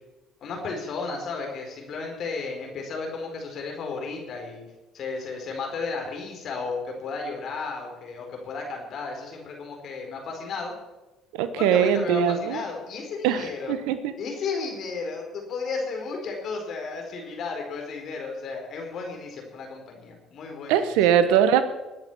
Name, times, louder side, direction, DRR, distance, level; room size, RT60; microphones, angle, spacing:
voice 1, 0.4-4.6 4.9-10.7 11.6-13.8 14.2-21.0, left 4 dB, 55° left, 1 dB, 4.4 m, -33 dB
voice 2, 11.3-12.6 13.2-14.1 20.7-21.6, right 9 dB, 75° right, 12 dB, 1.1 m, -21 dB
21.0 x 8.8 x 7.2 m, 1.1 s
hypercardioid pair, 60°, 0 cm